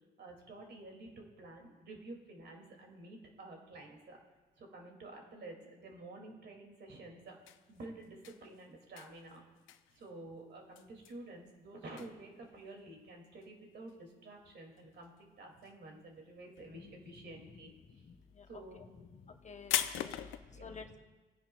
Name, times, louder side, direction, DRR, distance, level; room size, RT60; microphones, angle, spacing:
voice 1, 0.2-4.2 4.6-7.3 7.7-9.4 9.9-18.0 18.5-18.9 20.5-20.8, right 2 dB, 60° right, 1 dB, 2.4 m, -50 dB
sound 1, 7.3-15.2 15.5-16.2 16.5-20.4, left 12 dB, 85° left, 0.5 m, -41 dB
voice 2, 16.7-17.6 17.9-18.5 18.7-18.9 19.2-21.0, left 5 dB, 35° left, 6 dB, 0.8 m, -52 dB
19.5 x 9.8 x 2.3 m, 1.2 s
cardioid pair, 90°, 20 cm